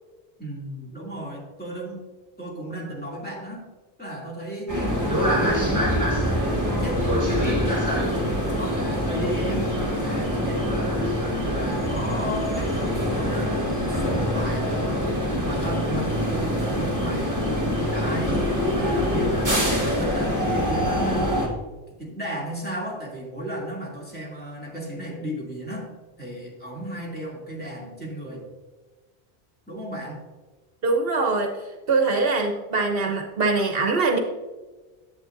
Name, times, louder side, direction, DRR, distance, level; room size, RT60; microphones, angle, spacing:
voice 1, 0.4-2.0 2.4-3.7 4.0-5.8 6.2-9.7 10.0-11.2 11.5-15.1 15.4-18.4 18.7-21.5 22.0-25.9 26.2-28.5 29.7-30.2, equal, 10° left, -5 dB, 2.4 m, -34 dB
sound 1, 4.7-21.5, equal, 15° right, 1.6 m, -24 dB
voice 2, 30.8-31.5 31.9-34.2, right 3 dB, 65° right, 3 dB, 1.0 m, -22 dB
10.5 x 7.9 x 2.6 m, 1.3 s
omnidirectional pair, 1.1 m